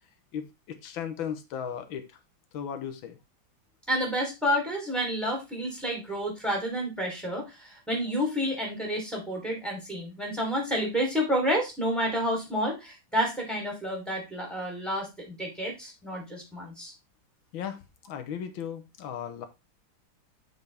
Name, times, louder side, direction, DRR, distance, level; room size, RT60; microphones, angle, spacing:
voice 1, 0.3-2.2 2.5-3.2 17.5-19.5, left 8 dB, 90° left, 9 dB, 1.8 m, -36 dB
voice 2, 3.9-16.9, equal, ahead, -1 dB, 3.4 m, -30 dB
7.1 x 6.3 x 3.4 m, 0.24 s
omnidirectional pair, 2.1 m